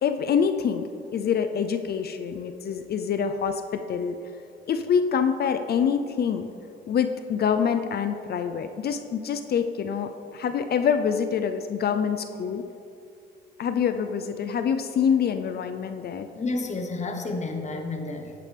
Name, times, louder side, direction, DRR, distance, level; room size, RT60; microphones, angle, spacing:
voice 1, 0.0-4.2 4.7-6.5 6.9-12.6 13.6-16.3, left 7 dB, 55° left, 8 dB, 0.5 m, -26 dB
voice 2, 16.3-18.3, left 3 dB, 35° left, 4 dB, 1.1 m, -30 dB
9.9 x 8.4 x 3.4 m, 2.5 s
cardioid pair, 90°, 20 cm